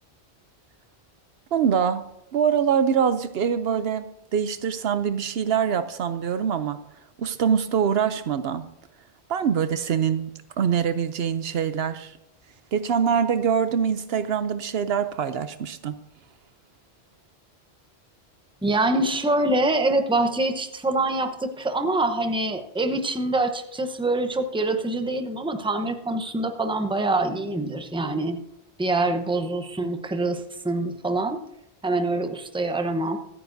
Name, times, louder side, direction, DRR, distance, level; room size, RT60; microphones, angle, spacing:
voice 1, 1.5-2.0 2.3-4.1 4.3-6.8 7.2-8.7 9.3-10.3 10.6-12.1 12.7-15.9, right 7 dB, 70° right, 12 dB, 0.8 m, -24 dB
voice 2, 18.6-28.4 28.8-31.4 31.8-33.2, right 2 dB, 5° right, 6 dB, 0.8 m, -25 dB
24.0 x 9.5 x 2.6 m, 0.85 s
omnidirectional pair, 1.1 m